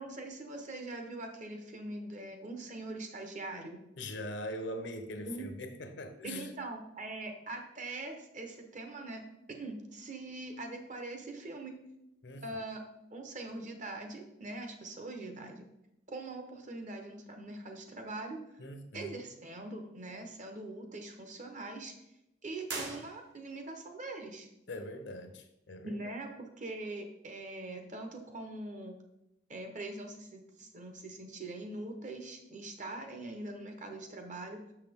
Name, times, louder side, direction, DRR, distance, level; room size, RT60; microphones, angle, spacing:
voice 1, 0.0-3.8 5.3-5.5 6.2-9.2 9.5-11.7 12.4-12.8 13.1-15.7 16.1-18.4 18.9-21.9 22.4-24.5 25.8-29.0 29.5-34.6, right 2 dB, 40° right, 5 dB, 0.9 m, -42 dB
voice 2, 4.0-6.5 12.2-12.5 18.6-19.3 24.7-26.0, left 1 dB, 70° left, 7 dB, 0.8 m, -42 dB
sound 1, 22.6-23.7, right 3 dB, 70° right, 1.4 m, -42 dB
6.4 x 5.7 x 3.5 m, 0.86 s
head